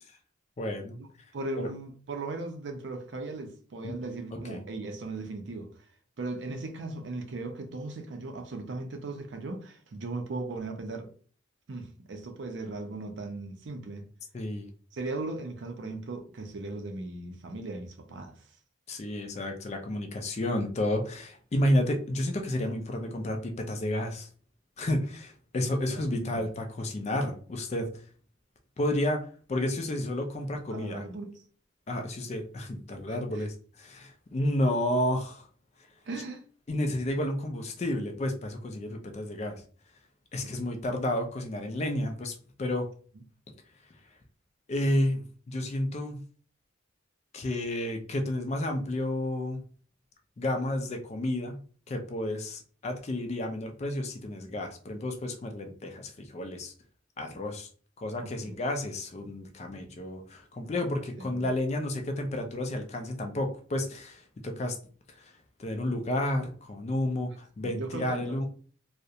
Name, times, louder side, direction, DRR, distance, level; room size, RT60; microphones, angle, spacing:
voice 1, 0.6-1.0 1.6-1.7 3.8-3.9 4.3-4.6 14.3-14.7 18.9-24.3 24.8-27.9 28.8-31.0 31.9-35.5 36.7-39.6 40.3-42.9 44.7-46.2 47.3-49.6 50.4-51.6 51.9-56.7 57.2-57.7 58.0-64.8 65.2-65.3 65.6-68.5, left 1 dB, 35° left, 0.3 m, -31 dB
voice 2, 1.3-5.7 6.2-11.1 11.7-14.1 14.9-18.4 26.1-26.4 30.7-31.4 33.1-33.5 36.1-36.4 40.4-40.7 58.2-58.6 61.2-61.5 67.6-68.4, right 2 dB, 60° right, 0.4 m, -38 dB
2.4 x 2.0 x 2.7 m
head